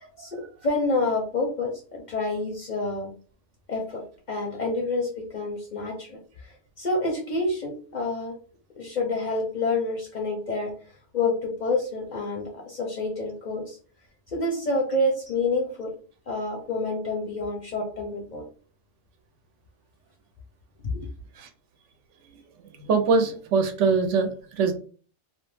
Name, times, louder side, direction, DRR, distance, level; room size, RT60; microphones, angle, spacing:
voice 1, 0.2-3.1 3.7-8.3 8.8-10.7 11.1-13.8 14.3-15.9 16.3-18.4 20.9-21.0, left 2 dB, 55° left, 0 dB, 0.5 m, -28 dB
voice 2, 22.6-24.7, right 4 dB, 85° right, 6 dB, 0.9 m, -23 dB
2.4 x 2.1 x 3.1 m, 0.41 s
omnidirectional pair, 1.2 m